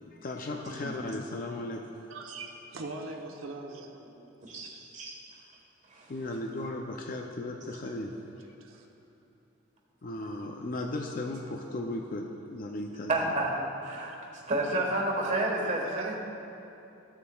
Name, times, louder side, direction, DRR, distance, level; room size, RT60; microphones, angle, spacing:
voice 1, 0.2-1.9 6.1-8.1 10.0-13.4, left 2 dB, 45° left, 2 dB, 0.5 m, -36 dB
voice 2, 2.1-4.3 7.3-7.5 7.8-8.2 8.6-8.9 13.6-13.7 15.2-16.2, right 3 dB, 85° right, 1 dB, 0.9 m, -42 dB
voice 3, 4.5-5.2 5.9-6.1 13.1-13.5 13.8-14.2 14.5-16.1, right 2 dB, 40° right, -1 dB, 1.3 m, -30 dB
14.5 x 7.0 x 2.3 m, 2.9 s
head